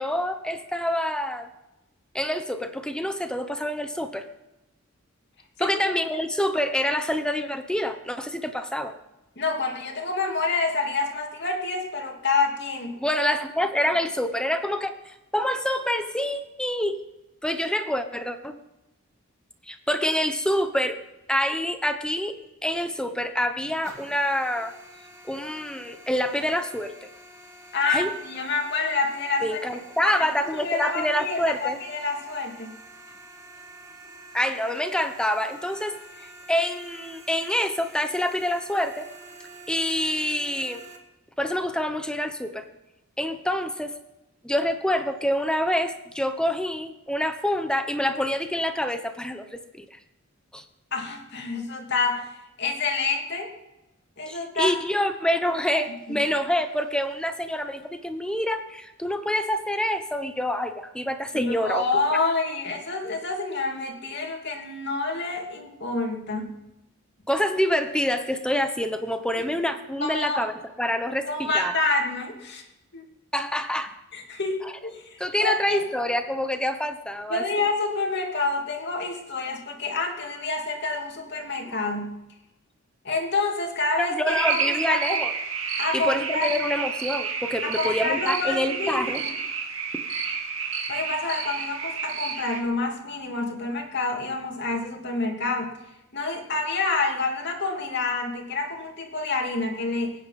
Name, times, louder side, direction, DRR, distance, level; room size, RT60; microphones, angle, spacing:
voice 1, 0.0-1.5 2.1-4.3 5.6-8.9 13.0-17.0 17.4-18.5 19.7-21.0 21.3-22.4 22.6-24.7 25.3-26.9 27.9-28.1 29.4-31.8 34.3-36.0 36.5-39.1 39.7-40.8 41.4-42.7 43.2-43.9 44.4-49.8 50.5-50.6 54.3-61.8 67.3-71.7 73.3-73.9 74.6-74.7 75.2-77.7 84.0-85.3 85.9-89.2, left 1 dB, 5° left, 8 dB, 1.0 m, -26 dB
voice 2, 5.6-5.9 9.4-13.0 27.7-29.6 30.0-30.3 30.5-32.7 50.9-52.2 52.6-53.5 54.2-54.7 55.7-56.2 61.3-66.5 69.4-69.5 70.0-70.4 71.3-72.6 72.9-73.1 74.1-75.8 77.3-82.1 83.0-85.2 85.8-86.5 87.6-89.4 90.9-95.7 96.1-100.1, left 3 dB, 55° left, 2 dB, 2.6 m, -28 dB
sound 1, 23.8-41.0, right 1 dB, 15° right, 2.2 m, -47 dB
sound 2, 84.3-92.6, right 6 dB, 70° right, 2.4 m, -30 dB
23.0 x 9.7 x 5.3 m, 0.95 s
head